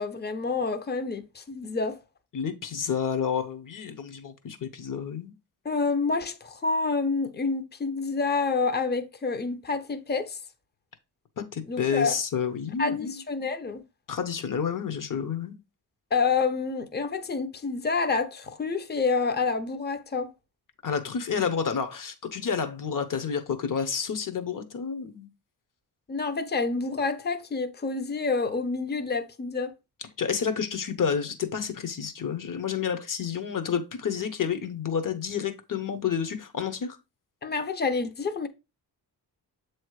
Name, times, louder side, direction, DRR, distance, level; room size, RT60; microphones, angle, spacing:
voice 1, 0.0-2.0 5.6-10.4 11.7-12.2 12.8-13.8 16.1-20.3 26.1-29.7 37.4-38.5, left 4 dB, 25° left, 0.8 m, -28 dB
voice 2, 2.3-5.3 11.4-13.1 14.1-15.6 20.8-25.3 30.2-37.0, left 7 dB, 50° left, 1.1 m, -30 dB
7.3 x 3.2 x 4.7 m
cardioid pair, 80°, 42 cm